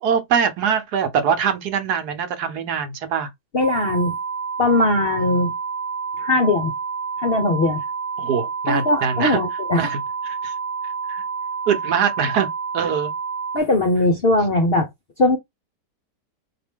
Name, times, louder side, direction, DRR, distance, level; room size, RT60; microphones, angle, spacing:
voice 1, 0.0-3.3 5.2-5.5 8.2-9.4 9.7-10.0 10.3-10.5 11.1-11.2 11.7-13.1, right 7 dB, 70° right, 1.3 m, -23 dB
voice 2, 3.5-4.1 4.6-5.5 6.2-6.7 7.2-7.8 8.7-9.9 13.5-14.9 15.2-15.4, left 2 dB, 55° left, 0.7 m, -19 dB
sound 1, 3.6-13.6, right 5 dB, 45° right, 0.9 m, -29 dB
4.2 x 2.9 x 3.4 m
omnidirectional pair, 1.9 m